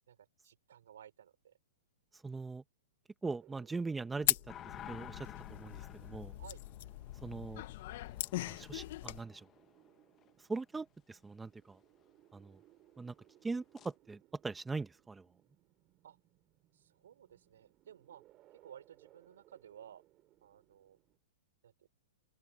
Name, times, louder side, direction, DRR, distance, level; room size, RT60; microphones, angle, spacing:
voice 1, 0.1-1.6 6.4-6.6 16.0-16.2 16.7-18.2 18.5-20.0 20.4-21.0 21.6-21.9, right 9 dB, 80° right, 4.7 m, -56 dB
voice 2, 2.2-2.6 3.2-4.3 4.9-6.3 7.2-7.6 8.4-9.5 10.5-11.8 12.3-12.6 13.0-13.1 13.4-15.2, right 3 dB, 10° right, 1.3 m, -41 dB
sound 1, 3.4-21.2, right 16 dB, 30° right, 7.3 m, -67 dB
sound 2, 4.2-9.2, left 15 dB, 55° left, 1.1 m, -39 dB
sound 3, 4.5-10.3 13.8-13.9, left 11 dB, 25° left, 1.4 m, -53 dB
open air
hypercardioid pair, 140°, 0 cm